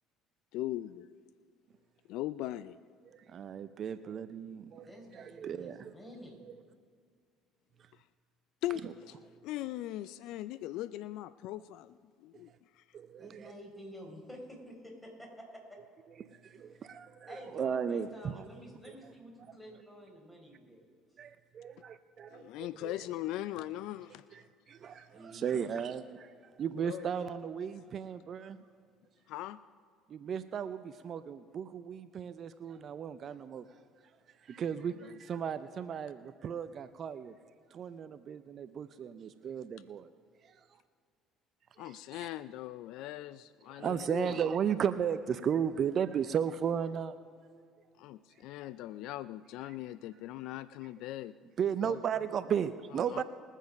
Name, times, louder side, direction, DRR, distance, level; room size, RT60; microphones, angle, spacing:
voice 1, 0.5-1.1 2.1-2.8 7.9-8.0 8.6-9.1 9.4-12.8 22.3-24.4 25.0-25.1 26.8-27.1 29.3-29.6 34.8-35.2 41.8-44.4 48.0-51.3 51.8-52.0 52.9-53.2, left 14 dB, 70° left, 16 dB, 0.3 m, -40 dB
voice 2, 3.3-4.8 5.1-5.9 12.9-13.5 16.4-17.3 17.5-18.1 21.5-22.4 22.8-22.9 24.7-26.0 26.6-28.6 30.1-33.6 34.5-37.3 37.7-38.4 38.8-39.7 43.7-47.1 51.6-53.2, right 8 dB, 50° right, 12 dB, 0.5 m, -34 dB
voice 3, 4.9-6.4 13.2-15.6 16.6-17.0 17.3-20.8 22.7-22.8 25.1-25.9 52.1-52.3, equal, 10° left, 0 dB, 4.3 m, -50 dB
21.0 x 7.3 x 5.2 m, 2.1 s
supercardioid pair, 80°, 0 cm